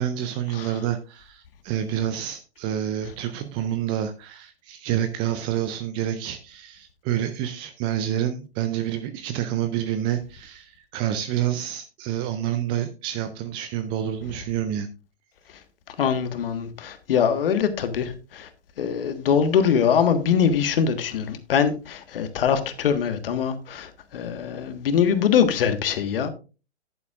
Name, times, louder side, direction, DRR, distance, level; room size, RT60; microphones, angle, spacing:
voice 1, 0.0-14.9, right 10 dB, 15° right, 0.4 m, -28 dB
voice 2, 16.0-18.5 18.8-26.3, left 7 dB, 55° left, 1.5 m, -23 dB
11.0 x 9.6 x 2.4 m
figure-of-eight pair, 125°, 33 cm